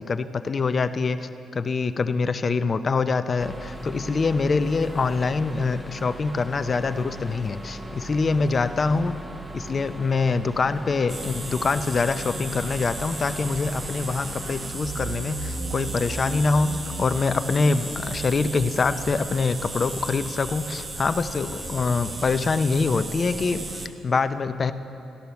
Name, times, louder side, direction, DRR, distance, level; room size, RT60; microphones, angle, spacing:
voice 1, 0.0-9.2 9.5-16.7 17.0-24.7, left 4 dB, 40° left, 11 dB, 0.5 m, -24 dB
sound 1, 3.4-14.7, right 2 dB, 5° right, 0.7 m, -40 dB
sound 2, 11.1-23.9, right 2 dB, 30° right, 1.0 m, -34 dB
14.5 x 10.5 x 7.0 m, 2.9 s
cardioid pair, 90°, 0 cm